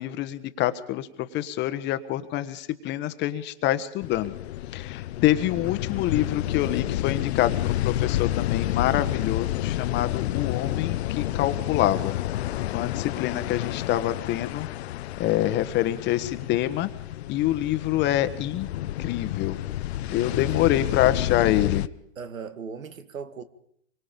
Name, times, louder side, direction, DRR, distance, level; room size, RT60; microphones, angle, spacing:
voice 1, 0.0-4.3 4.7-12.1 12.7-14.7 15.2-16.9 17.3-18.7 19.0-19.6 20.1-21.8, left 13 dB, 25° left, 1.3 m, -26 dB
sound 1, 4.0-21.9, left 13 dB, 55° left, 0.9 m, -30 dB
voice 2, 20.1-20.5 22.2-23.4, right 6 dB, 85° right, 2.0 m, -38 dB
25.5 x 24.0 x 5.3 m
hypercardioid pair, 130°, 39 cm